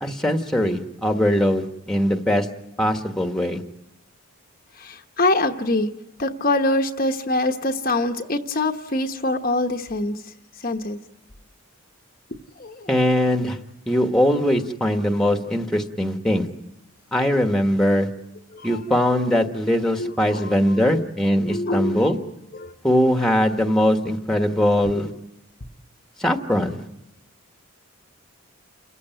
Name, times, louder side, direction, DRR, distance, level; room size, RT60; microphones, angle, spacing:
voice 1, 0.0-2.5 2.8-3.6 12.9-13.6 13.9-16.5 17.1-18.1 18.6-22.2 22.8-25.1 26.2-26.8, equal, ahead, 5 dB, 1.3 m, -21 dB
voice 2, 4.7-5.9 6.2-10.2 10.6-11.0 12.6-12.9 18.5-19.0 20.0-21.1 21.4-22.7, left 2 dB, 40° left, 4 dB, 1.0 m, -25 dB
29.5 x 15.0 x 9.2 m, 0.92 s
head